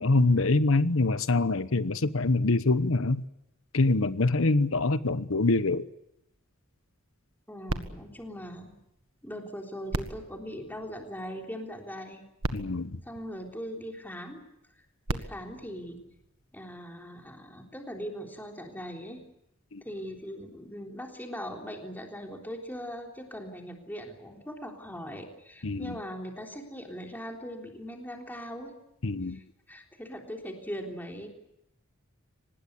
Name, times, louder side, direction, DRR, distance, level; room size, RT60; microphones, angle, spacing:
voice 1, 0.0-3.2 3.7-5.9 12.5-13.0 19.7-19.8 25.6-26.0 29.0-29.4, left 2 dB, 70° left, 1.0 m, -25 dB
voice 2, 7.5-8.7 9.2-12.2 13.0-14.4 15.1-16.0 16.5-19.2 19.8-28.8 29.3-29.4 29.7-31.3, equal, 10° left, 3.6 m, -40 dB
sound 1, 7.7-9.3 9.8-11.5 12.1-12.2 12.4-14.0 14.8-16.6 17.3-17.4, right 2 dB, 70° right, 1.7 m, -38 dB
25.0 x 20.0 x 8.4 m
head